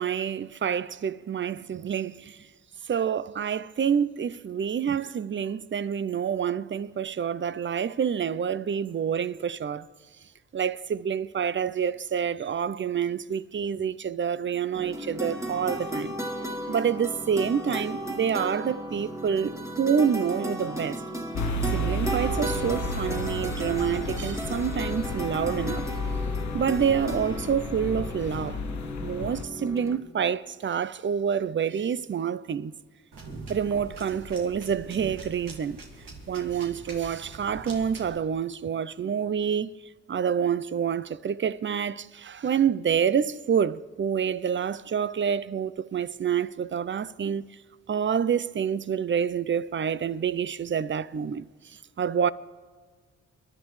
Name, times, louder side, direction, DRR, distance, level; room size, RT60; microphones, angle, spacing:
voice 1, 0.0-2.4 2.9-9.9 10.5-16.1 16.7-21.0 21.7-25.9 26.5-28.6 29.0-32.7 33.5-35.8 36.3-39.8 40.1-47.5 47.9-51.5 52.0-52.3, right 7 dB, 35° right, 0.5 m, -27 dB
sound 1, 14.7-30.0, equal, 10° right, 1.7 m, -35 dB
sound 2, 21.4-29.4, left 1 dB, 55° left, 0.9 m, -32 dB
sound 3, 33.1-38.2, right 3 dB, 80° right, 2.2 m, -43 dB
24.5 x 11.5 x 3.2 m
supercardioid pair, 50°, 33 cm